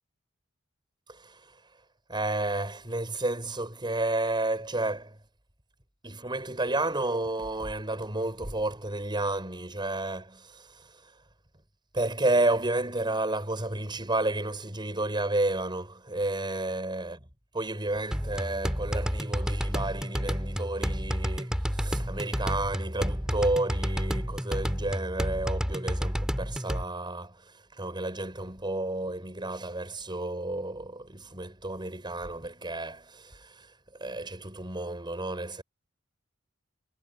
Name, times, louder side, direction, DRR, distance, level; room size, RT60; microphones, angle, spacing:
voice 1, 1.1-1.4 2.1-5.2 6.0-10.9 11.9-17.2 17.5-27.4 27.7-33.7 33.9-35.6, right 2 dB, 25° right, 5.9 m, -31 dB
sound 1, 18.1-26.8, equal, 5° right, 2.8 m, -30 dB
head